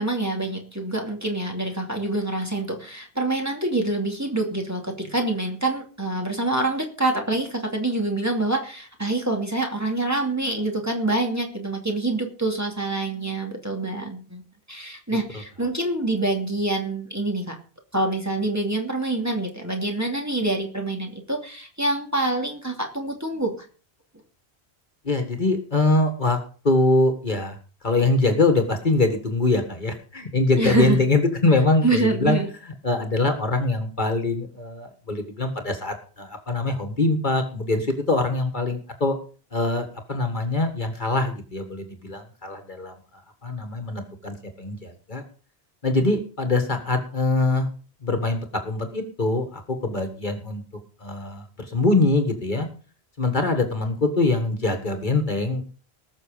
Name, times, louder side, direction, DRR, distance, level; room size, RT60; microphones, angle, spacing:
voice 1, 0.0-14.4 14.7-17.6 17.9-23.7 30.6-31.0 31.8-32.5, right 2 dB, 15° right, 2 dB, 2.7 m, -26 dB
voice 2, 25.1-26.4 26.6-27.6 27.8-32.4 32.8-39.1 39.5-42.9 43.4-45.2 45.8-47.7 48.0-50.6 51.0-52.7 53.2-55.6, left 2 dB, 50° left, 6 dB, 1.9 m, -23 dB
19.5 x 6.8 x 5.1 m, 0.39 s
omnidirectional pair, 1.1 m